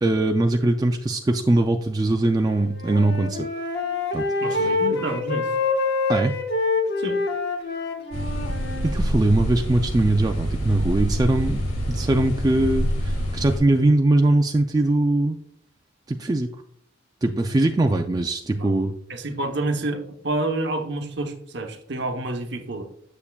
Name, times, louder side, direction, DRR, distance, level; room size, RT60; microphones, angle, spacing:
voice 1, 0.0-3.5 4.1-4.3 4.5-4.8 6.1-6.3 8.8-11.6 11.9-15.4 16.1-16.5 17.2-18.9, right 2 dB, 20° right, 4 dB, 0.3 m, -21 dB
Wind instrument woodwind instrument, 2.5-9.0, left 3 dB, 50° left, 1.2 m, -26 dB
voice 2, 4.4-5.5 7.0-7.2 18.6-18.7 19.1-22.8, right 2 dB, 55° right, 5 dB, 0.9 m, -28 dB
sound 1, 8.1-13.6, equal, 85° left, 2.4 m, -26 dB
9.5 x 6.9 x 2.3 m, 0.68 s
head